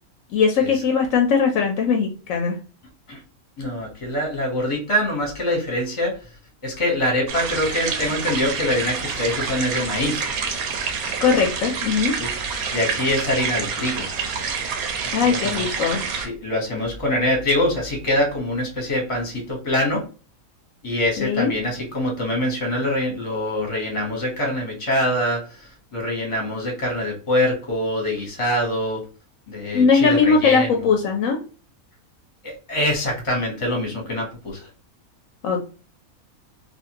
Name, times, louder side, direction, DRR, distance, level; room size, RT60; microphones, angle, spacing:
voice 1, 0.3-2.6 11.2-12.1 15.1-16.0 21.2-21.5 29.7-31.4 35.4-35.6, left 5 dB, 70° left, 2 dB, 0.9 m, -19 dB
voice 2, 3.6-6.2 6.6-10.3 12.2-12.3 12.7-14.1 15.2-15.7 16.1-20.0 20.8-29.0 29.5-30.8 32.4-34.7, left 1 dB, 25° left, 0 dB, 0.9 m, -24 dB
sound 1, 7.3-16.3, right 5 dB, 80° right, 1.1 m, -27 dB
2.6 x 2.5 x 2.8 m, 0.36 s
omnidirectional pair, 1.5 m